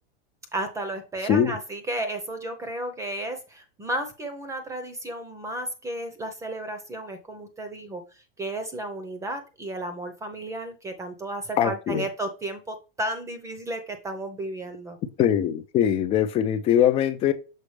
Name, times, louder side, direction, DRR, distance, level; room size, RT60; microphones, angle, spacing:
voice 1, 0.5-8.0 8.4-15.0, right 1 dB, 10° right, 0.8 m, -33 dB
voice 2, 1.2-1.6 11.6-12.1 15.2-17.3, left 10 dB, 20° left, 0.4 m, -22 dB
6.5 x 4.8 x 3.2 m
supercardioid pair, 160°, 30 cm